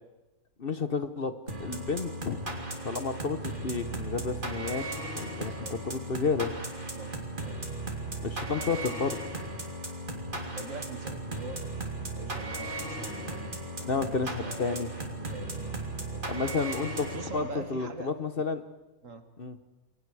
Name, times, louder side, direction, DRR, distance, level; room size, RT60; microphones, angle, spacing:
voice 1, 0.6-2.4 2.8-4.8 5.2-5.5 5.8-6.5 8.2-9.2 13.8-14.9 16.3-18.6 19.4-19.6, left 4 dB, 45° left, 10 dB, 1.1 m, -31 dB
sound 1, 1.5-17.8, right 2 dB, 35° right, 3.3 m, -36 dB
voice 2, 5.3-5.8 6.9-7.1 7.4-7.7 10.5-16.5 17.1-18.1 19.0-19.3, right 3 dB, 60° right, 8 dB, 2.1 m, -44 dB
29.0 x 23.5 x 4.8 m, 1.1 s
omnidirectional pair, 1.5 m